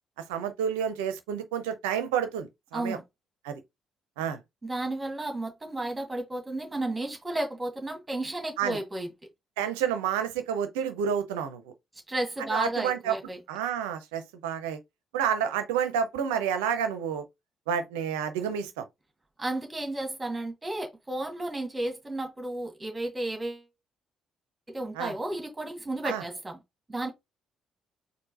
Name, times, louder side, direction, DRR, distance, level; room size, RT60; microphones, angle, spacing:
voice 1, 0.2-3.0 3.4-3.6 4.2-4.4 8.6-8.8 9.6-11.7 12.5-13.2 13.5-14.8 15.1-17.2 17.7-18.8 25.0-25.1 26.0-26.2, right 8 dB, 70° right, 0.6 m, -29 dB
voice 2, 4.6-9.1 12.1-13.4 19.4-23.7 24.7-26.6 26.9-27.1, right 2 dB, 20° right, 1.9 m, -33 dB
4.4 x 2.8 x 4.2 m
figure-of-eight pair, 45°, 0 cm